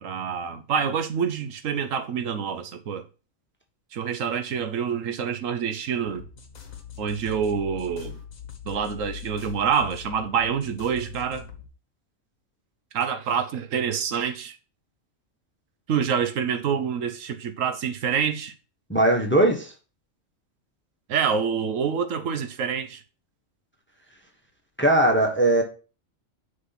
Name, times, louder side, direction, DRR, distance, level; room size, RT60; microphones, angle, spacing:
voice 1, 0.0-3.1 3.9-6.2 7.0-8.2 8.6-11.5 12.9-14.6 15.9-18.5 21.1-23.0, right 7 dB, 70° right, 1.2 m, -27 dB
sound 1, 6.1-11.7, left 8 dB, 80° left, 1.6 m, -41 dB
voice 2, 18.9-19.7 24.8-25.6, right 1 dB, 10° left, 1.1 m, -19 dB
6.5 x 3.9 x 5.7 m
omnidirectional pair, 1.4 m